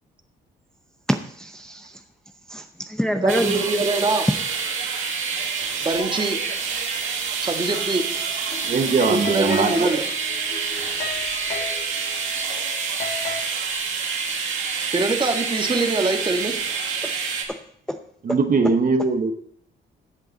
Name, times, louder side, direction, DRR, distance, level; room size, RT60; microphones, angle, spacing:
voice 1, 1.1-2.0 2.5-3.8, equal, 5° left, 6 dB, 0.7 m, -26 dB
voice 2, 3.2-4.3 5.8-6.4 7.4-8.1 9.1-10.0 14.9-16.6, right 2 dB, 25° right, 5 dB, 1.6 m, -23 dB
sound 1, 3.3-17.4, right 5 dB, 80° right, 2.0 m, -27 dB
sound 2, 7.7-13.4, left 4 dB, 55° left, 1.8 m, -35 dB
voice 3, 8.7-10.0 18.2-19.3, right 4 dB, 45° right, 6 dB, 1.0 m, -21 dB
14.5 x 7.7 x 3.9 m, 0.67 s
cardioid pair, 90°, 20 cm